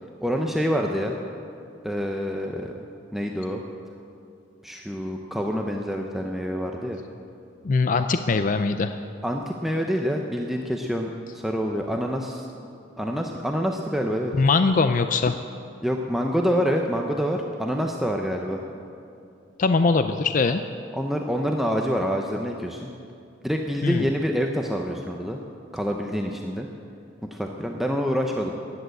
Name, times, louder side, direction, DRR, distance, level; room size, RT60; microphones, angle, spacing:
voice 1, 0.2-1.1 1.8-2.7 3.1-3.6 4.6-7.0 9.2-12.5 13.0-14.3 15.8-18.6 20.9-22.9 23.4-25.4 25.7-26.7 27.2-28.5, equal, ahead, 1 dB, 0.7 m, -26 dB
voice 2, 7.6-9.0 14.4-15.4 19.6-20.6 23.8-24.1, left 4 dB, 45° left, 9 dB, 0.4 m, -21 dB
14.5 x 10.5 x 7.7 m, 2.5 s
head